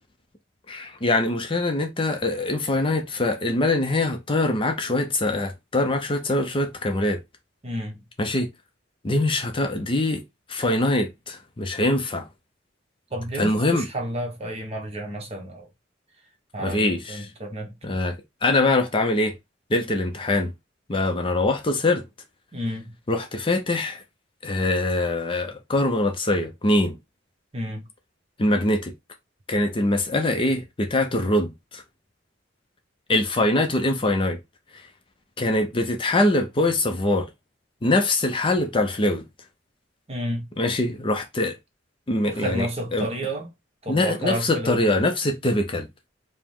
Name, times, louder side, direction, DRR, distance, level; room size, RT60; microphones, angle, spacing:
voice 1, 0.7-7.2 8.2-8.5 9.0-10.2 10.5-12.3 13.4-13.9 16.6-17.3 17.8-18.2 18.4-19.3 19.7-20.5 20.9-22.0 23.1-24.0 24.4-27.0 28.4-28.9 29.5-31.8 33.1-34.4 35.4-37.3 37.8-39.2 40.6-41.6 42.1-42.7 42.9-43.1 43.9-45.9, left 2 dB, 25° left, 0.5 m, -23 dB
voice 2, 7.6-8.0 13.1-15.7 16.5-17.7 22.5-22.9 27.5-27.8 40.1-40.4 42.3-43.5 43.8-44.8, equal, 35° right, 1.0 m, -31 dB
4.8 x 2.1 x 3.6 m
head